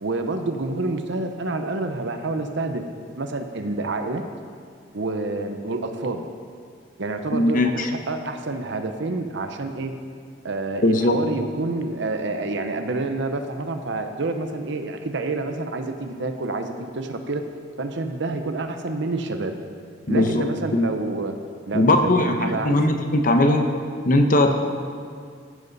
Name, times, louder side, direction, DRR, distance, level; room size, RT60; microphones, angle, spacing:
voice 1, 0.0-2.9 3.2-4.2 4.9-6.2 7.0-9.9 10.4-17.4 17.8-19.6 20.1-21.3 21.7-22.1 22.4-23.1, right 2 dB, 65° right, 6 dB, 0.8 m, -28 dB
voice 2, 7.3-7.9 10.8-11.1 20.1-20.4 20.7-20.9 21.7-23.7 24.1-24.5, left 1 dB, 45° left, 5 dB, 0.9 m, -19 dB
14.5 x 11.0 x 4.1 m, 2.2 s
head